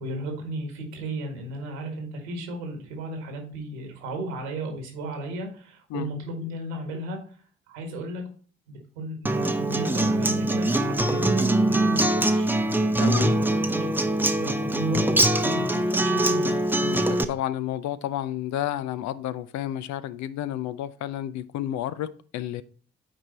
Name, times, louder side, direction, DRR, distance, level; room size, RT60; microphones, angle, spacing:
voice 1, 0.0-7.2 7.7-8.3 8.7-13.9 14.3-16.6, right 1 dB, 80° right, 3 dB, 1.7 m, -35 dB
Acoustic guitar, 9.2-17.2, right 1 dB, 5° right, 0.7 m, -23 dB
voice 2, 13.0-13.4 16.8-22.6, left 12 dB, 55° left, 15 dB, 0.5 m, -31 dB
8.8 x 4.6 x 4.1 m, 0.43 s
figure-of-eight pair, 45°, 33 cm